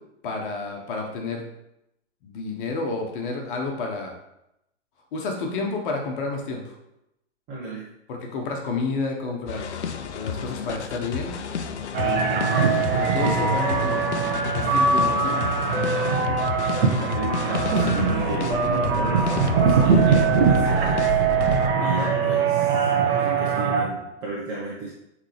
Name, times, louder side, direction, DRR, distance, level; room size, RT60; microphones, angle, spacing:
voice 1, 0.2-1.4 2.2-4.1 5.1-6.7 8.1-9.6 10.1-11.3 12.0-14.1 14.5-15.4 22.3-22.4, left 3 dB, 45° left, 1 dB, 1.4 m, -30 dB
voice 2, 7.5-7.9 16.0-16.5 16.8-24.9, right 3 dB, 30° right, -6 dB, 1.7 m, -35 dB
sound 1, 9.5-21.7, left 5 dB, 65° left, 0.8 m, -31 dB
sound 2, 11.9-23.9, right 5 dB, 50° right, 1.4 m, -22 dB
9.8 x 3.8 x 3.4 m, 0.86 s
figure-of-eight pair, 115°, 36 cm